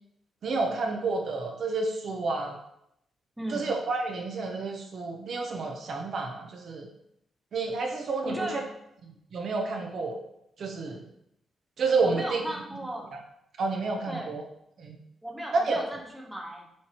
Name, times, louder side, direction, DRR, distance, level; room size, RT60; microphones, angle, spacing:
voice 1, 0.4-2.6 3.5-6.9 7.5-8.5 9.3-10.2 10.6-11.0 11.8-12.4 13.6-14.4 14.8-15.0 15.5-15.8, right 3 dB, 50° right, 3 dB, 0.8 m, -29 dB
voice 2, 3.4-3.8 8.2-8.6 12.0-13.1 14.1-14.3 15.2-16.7, right 1 dB, 5° right, -1 dB, 0.9 m, -36 dB
7.1 x 3.2 x 4.4 m, 0.77 s
wide cardioid pair, 175°, 0 cm